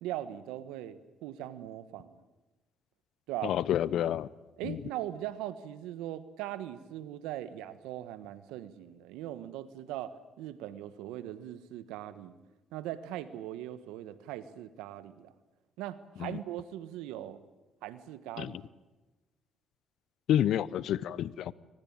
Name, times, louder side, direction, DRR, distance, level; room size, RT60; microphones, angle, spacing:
voice 1, 0.0-2.2 3.3-3.5 4.6-12.4 12.7-15.3 15.8-17.4 17.8-18.6, right 12 dB, 90° right, 13 dB, 1.3 m, -40 dB
voice 2, 3.4-4.3 4.6-4.8 16.2-16.4 18.4-18.5 20.3-21.5, left 11 dB, 75° left, 20 dB, 0.7 m, -29 dB
23.5 x 20.5 x 8.8 m, 1.1 s
supercardioid pair, 70°, 0 cm